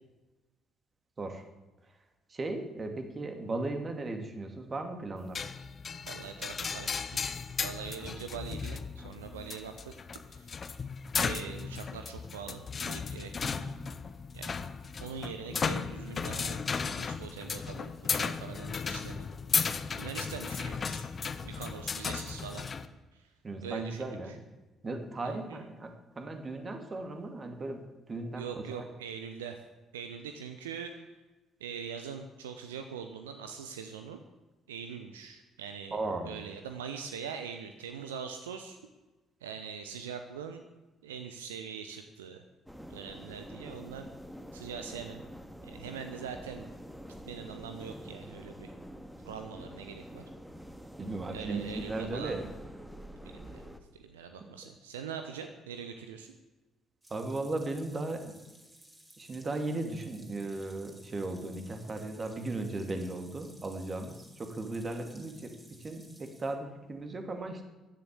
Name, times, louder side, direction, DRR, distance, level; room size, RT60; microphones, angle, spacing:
voice 1, 2.3-5.4 23.4-24.4 24.8-27.8 28.1-28.9 35.9-36.4 51.0-52.5 57.1-58.3 59.2-67.6, right 2 dB, 35° right, 5 dB, 2.7 m, -36 dB
sound 1, 5.3-22.9, left 5 dB, 40° left, 1.0 m, -35 dB
voice 2, 6.0-7.3 7.6-10.6 11.2-13.7 14.3-14.7 15.0-19.3 20.0-21.1 21.4-22.7 23.1-23.3 23.6-24.4 25.2-25.6 28.4-29.6 29.9-31.1 31.6-34.2 34.7-36.0 36.3-38.8 39.4-40.6 41.0-42.4 42.9-44.1 44.5-45.2 45.6-46.7 47.2-48.7 49.2-50.2 51.3-52.4 53.2-53.6 53.9-56.3, right 7 dB, 75° right, 7 dB, 0.8 m, -43 dB
sound 2, 42.7-53.8, equal, ahead, 2.0 m, -47 dB
sound 3, 57.0-66.6, right 1 dB, 20° right, 4.8 m, -57 dB
15.0 x 10.5 x 8.4 m, 1.1 s
figure-of-eight pair, 45°, 0 cm